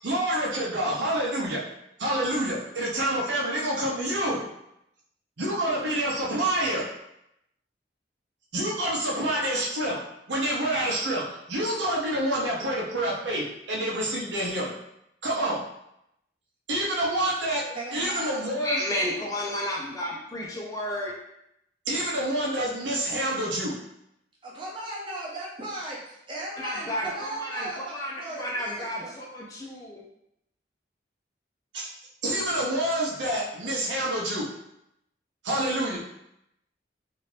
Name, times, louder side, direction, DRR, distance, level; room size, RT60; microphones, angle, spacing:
voice 1, 0.0-1.6 2.0-4.4 5.4-6.9 8.5-10.0 10.3-14.8 15.2-15.6 16.7-18.8 21.9-23.8 31.7-31.9 32.2-34.5 35.4-36.0, right 1 dB, 85° right, -4 dB, 0.8 m, -27 dB
voice 2, 17.7-18.5 24.4-29.1, right 2 dB, 25° right, -5 dB, 0.8 m, -37 dB
voice 3, 18.6-21.1 26.6-30.0, left 1 dB, 20° left, -2 dB, 0.4 m, -32 dB
2.8 x 2.5 x 3.2 m, 0.79 s
head